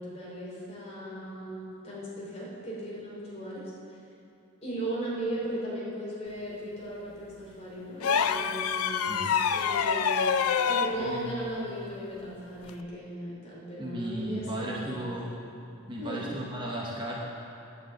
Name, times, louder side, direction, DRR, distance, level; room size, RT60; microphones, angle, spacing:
voice 1, 0.0-3.6 4.6-15.2 16.0-16.3, right 1 dB, 30° left, -6 dB, 2.9 m, -37 dB
sound 1, 8.0-11.0 12.6-12.8, left 7 dB, 90° left, 0.5 m, -26 dB
voice 2, 10.9-11.3 13.8-15.4 15.9-17.2, right 1 dB, 20° right, -3 dB, 1.0 m, -35 dB
8.9 x 7.3 x 7.8 m, 2.8 s
head